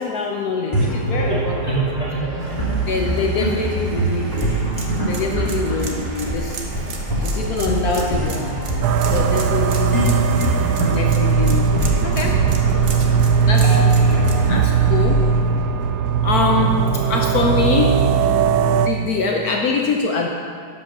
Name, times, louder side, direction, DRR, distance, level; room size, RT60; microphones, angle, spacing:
voice 1, 0.0-1.8 2.9-6.6 7.2-8.5 9.1-9.9 10.9-12.4 13.4-13.8 14.1-15.4 16.2-16.7 17.1-18.0 18.7-20.3, left 4 dB, 65° left, 1 dB, 1.1 m, -24 dB
sound 1, 0.7-16.4, right 1 dB, 20° left, 1.7 m, -24 dB
sound 2, 2.4-14.5, right 4 dB, 45° right, 1.1 m, -36 dB
sound 3, 8.8-18.9, right 6 dB, 70° right, 1.0 m, -18 dB
11.0 x 5.5 x 6.7 m, 2.1 s
omnidirectional pair, 2.0 m